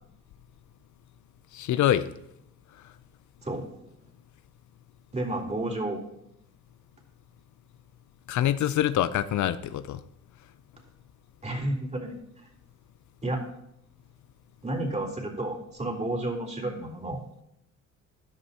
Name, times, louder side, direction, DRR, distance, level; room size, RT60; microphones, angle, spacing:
voice 1, 1.5-2.1 8.3-10.0, left 11 dB, 70° left, 13 dB, 0.7 m, -25 dB
voice 2, 5.1-6.0 11.4-12.1 13.2-13.4 14.6-17.2, right 1 dB, 25° right, 0 dB, 3.7 m, -31 dB
15.5 x 11.0 x 3.0 m, 0.79 s
cardioid pair, 90°, 30 cm